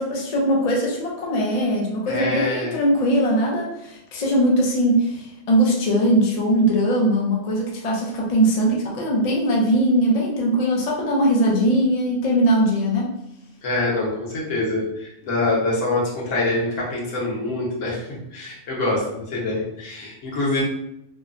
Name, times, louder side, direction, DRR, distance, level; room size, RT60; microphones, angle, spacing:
voice 1, 0.0-13.1, right 1 dB, 50° left, -2 dB, 0.4 m, -20 dB
voice 2, 2.1-2.8 13.6-20.6, left 2 dB, 70° left, -5 dB, 1.2 m, -25 dB
3.1 x 2.1 x 2.4 m, 0.82 s
omnidirectional pair, 1.4 m